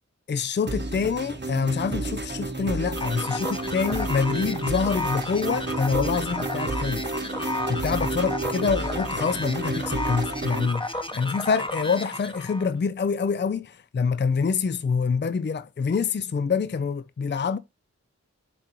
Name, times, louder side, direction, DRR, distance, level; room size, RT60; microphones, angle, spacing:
voice 1, 0.3-7.0 7.3-17.6, left 5 dB, 40° left, 0.4 m, -26 dB
sound 1, 0.7-10.7, right 2 dB, 40° right, 0.9 m, -31 dB
sound 2, 3.0-12.7, left 1 dB, 15° left, 0.9 m, -33 dB
10.5 x 3.7 x 2.9 m
wide cardioid pair, 45°, 29 cm